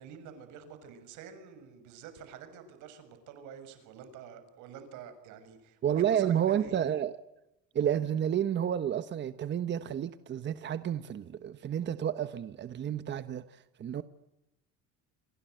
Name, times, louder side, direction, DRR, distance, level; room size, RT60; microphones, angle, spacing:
voice 1, 0.0-6.8, right 7 dB, 85° right, 6.9 m, -48 dB
voice 2, 5.8-7.1 7.7-14.0, right 9 dB, 40° right, 1.2 m, -30 dB
28.0 x 25.5 x 8.0 m
cardioid pair, 140°, 29 cm